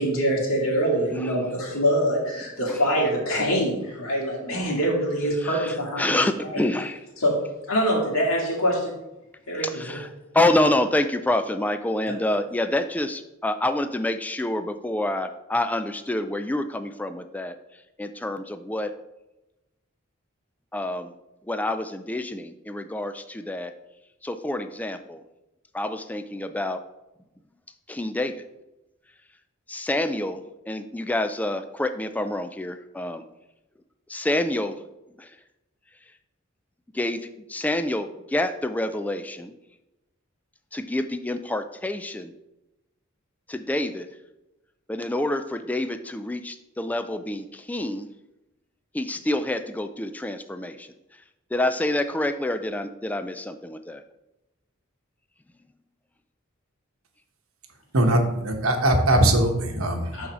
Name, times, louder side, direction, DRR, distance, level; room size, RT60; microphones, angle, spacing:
voice 1, 0.0-6.3 6.5-6.6 7.2-7.4 7.7-8.9 9.5-10.0 12.1-12.2 60.1-60.3, equal, 90° left, -2 dB, 2.3 m, -24 dB
voice 2, 5.4-7.0 9.6-17.6 18.0-18.9 20.7-21.1 21.5-23.7 24.2-25.2 25.7-26.8 27.9-28.4 29.7-33.2 34.1-34.8 35.2-35.4 36.9-39.5 40.7-42.3 43.5-44.1 44.9-48.1 48.9-50.9 51.5-54.0, left 1 dB, 10° left, 8 dB, 0.3 m, -27 dB
voice 3, 57.9-60.1, right 1 dB, 90° right, 4 dB, 1.1 m, -21 dB
5.8 x 4.0 x 6.2 m, 0.96 s
head